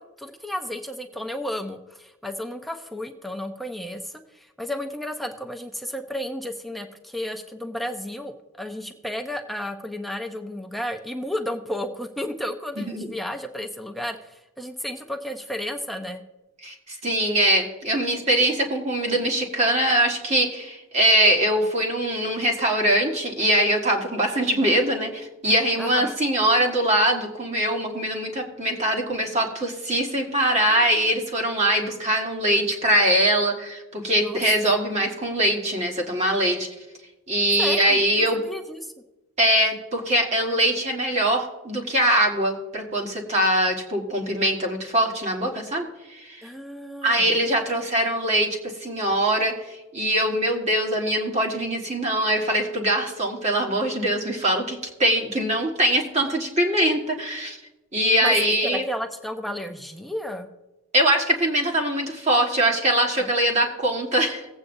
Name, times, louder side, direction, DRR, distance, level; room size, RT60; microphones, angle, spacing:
voice 1, 0.0-16.2 25.8-26.1 30.7-30.9 34.2-34.7 37.6-38.9 46.4-47.3 58.2-58.4 58.6-60.5 63.2-63.3, left 1 dB, ahead, 4 dB, 0.6 m, -33 dB
voice 2, 16.6-36.7 37.3-38.4 39.4-46.4 47.0-57.6 57.9-58.8 60.9-64.5, right 1 dB, 35° right, 1 dB, 1.6 m, -22 dB
18.0 x 8.3 x 2.7 m, 1.0 s
head